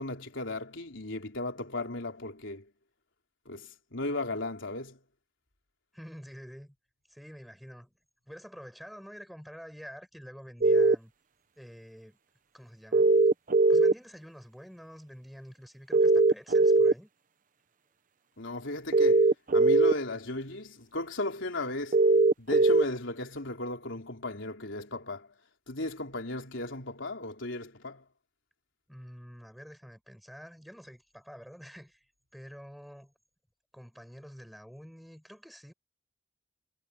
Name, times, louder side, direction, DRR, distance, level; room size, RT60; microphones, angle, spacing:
voice 1, 0.0-2.7 3.5-5.0 18.4-22.0 22.4-25.3 25.7-28.0, left 2 dB, 70° left, 3.8 m, -36 dB
voice 2, 5.9-6.7 7.1-7.9 8.3-11.1 11.6-12.2 12.5-13.2 13.7-17.1 28.9-33.1 33.7-35.7, equal, ahead, 7.8 m, -48 dB
sound 1, 10.6-10.9 12.9-13.9 15.9-16.9 18.9-19.9 21.9-22.8, right 3 dB, 40° right, 0.9 m, -20 dB
head